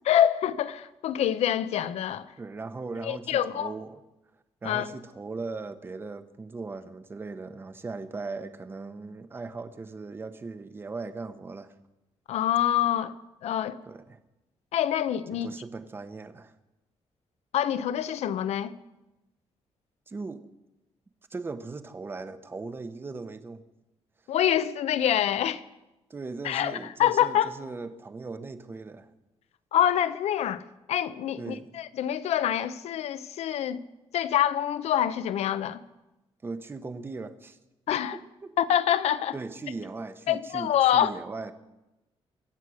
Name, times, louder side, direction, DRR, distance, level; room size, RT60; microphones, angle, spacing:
voice 1, 0.1-2.3 3.0-3.7 4.6-4.9 12.3-13.1 13.4-13.8 14.7-15.5 17.5-18.7 24.3-25.6 26.4-27.5 29.7-30.6 30.9-33.8 34.1-35.8 37.9-38.2 38.6-39.4 40.3-41.2, left 10 dB, 80° left, 0.8 m, -26 dB
voice 2, 2.4-4.0 4.6-11.7 13.8-14.2 15.3-16.5 20.1-20.5 21.3-23.6 26.1-29.1 31.4-31.8 36.4-37.6 38.1-38.6 39.3-41.5, right 3 dB, 20° right, 0.8 m, -38 dB
23.5 x 8.2 x 6.3 m
wide cardioid pair, 170°, 11 cm